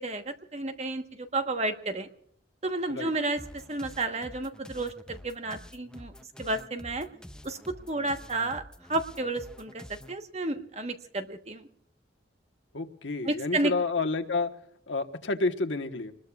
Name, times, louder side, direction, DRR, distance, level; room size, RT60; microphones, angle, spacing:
voice 1, 0.0-2.1 2.6-6.1 6.4-7.1 7.4-8.6 8.9-11.7 13.2-13.7, right 2 dB, 35° right, 7 dB, 1.2 m, -32 dB
sound 1, 3.4-10.2, equal, 5° left, 0.6 m, -48 dB
voice 2, 12.7-14.5 14.9-16.1, left 3 dB, 85° left, 7 dB, 1.3 m, -29 dB
27.0 x 20.5 x 2.4 m, 0.65 s
head